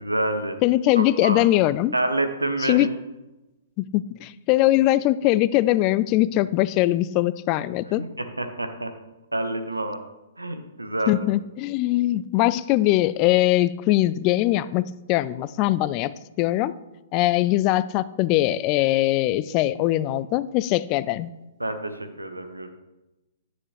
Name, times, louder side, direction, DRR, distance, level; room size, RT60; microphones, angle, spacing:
voice 1, 0.0-0.6 1.0-1.4 1.9-2.9 8.0-9.0 9.3-10.0 10.4-11.2 21.6-22.7, right 1 dB, 85° right, 8 dB, 0.9 m, -28 dB
voice 2, 0.6-1.9 2.6-2.9 3.8-8.0 11.1-16.7 17.1-21.3, left 15 dB, 35° left, 17 dB, 0.3 m, -21 dB
9.7 x 9.2 x 3.1 m, 1.0 s
figure-of-eight pair, 115°, 0 cm